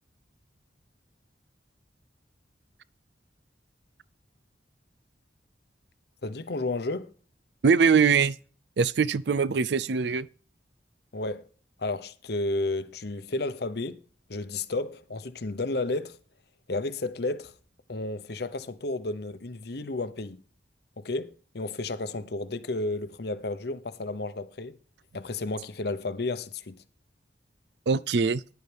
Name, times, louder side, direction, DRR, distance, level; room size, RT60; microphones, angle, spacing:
voice 1, 6.2-7.1 11.1-11.5 11.8-14.0 14.3-16.2 16.7-17.5 17.9-20.4 21.0-24.8 25.1-26.8, left 2 dB, 60° left, 0.9 m, -32 dB
voice 2, 7.6-8.4 8.8-10.3 27.9-28.4, right 5 dB, 65° right, 0.5 m, -22 dB
11.0 x 9.4 x 3.4 m
head